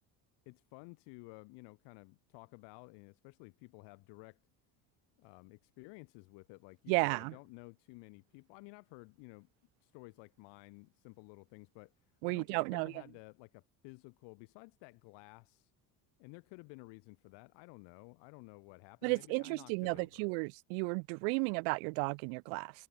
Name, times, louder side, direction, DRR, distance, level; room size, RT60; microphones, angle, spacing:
voice 1, 0.5-4.4 5.2-9.5 9.8-11.9 12.2-15.7 16.2-20.3, left 29 dB, 80° left, 5.8 m, -54 dB
voice 2, 6.9-7.3 12.2-12.9 19.0-22.7, right 40 dB or more, 85° right, 1.6 m, -33 dB
supercardioid pair, 105°, 42 cm